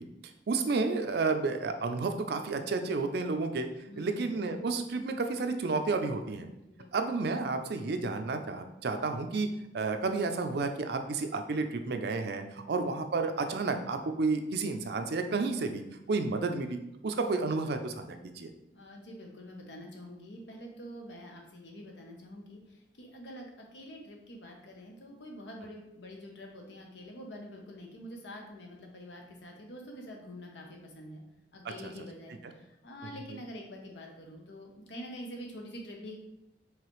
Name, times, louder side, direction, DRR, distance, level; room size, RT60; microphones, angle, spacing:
voice 1, 0.5-3.7 4.0-6.5 6.9-9.5 9.7-15.8 16.1-16.8 17.0-18.5 31.8-31.9, right 3 dB, 65° right, 7 dB, 0.5 m, -31 dB
voice 2, 3.9-4.5 6.7-6.9 12.6-13.1 18.7-31.2 31.5-36.2, equal, 80° left, 1 dB, 0.9 m, -46 dB
4.8 x 3.3 x 3.1 m, 0.87 s
head